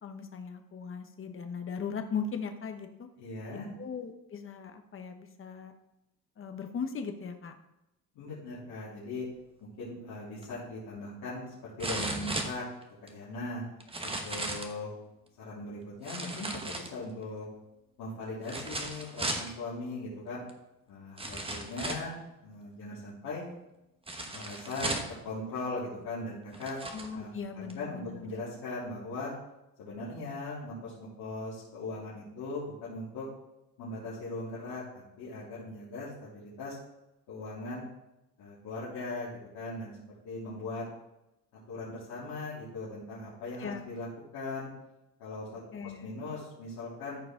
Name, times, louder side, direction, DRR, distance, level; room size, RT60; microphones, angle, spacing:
voice 1, 0.0-3.1 3.5-5.7 6.4-7.5 26.8-28.2 43.6-43.9 45.7-46.1, left 6 dB, 35° left, 6 dB, 1.0 m, -38 dB
voice 2, 3.2-3.6 8.1-9.2 9.8-12.6 13.0-13.6 14.0-14.9 15.4-17.5 18.0-20.4 20.9-23.4 24.2-26.8 27.1-27.3 27.5-29.3 29.8-33.3 33.8-36.8 37.3-37.8 38.4-40.0 40.2-40.8 41.7-44.1 44.3-44.7 45.2-47.2, left 2 dB, 90° left, -11 dB, 3.4 m, -39 dB
sound 1, 10.4-10.5 11.8-13.1 13.8-14.8 16.0-17.2 18.4-19.5 20.5-20.6 21.2-22.1 24.1-25.2 26.0-26.1 26.5-27.1 27.7-27.8, right 2 dB, 15° right, 1.1 m, -36 dB
14.0 x 4.7 x 3.8 m, 0.91 s
cardioid pair, 125°, 36 cm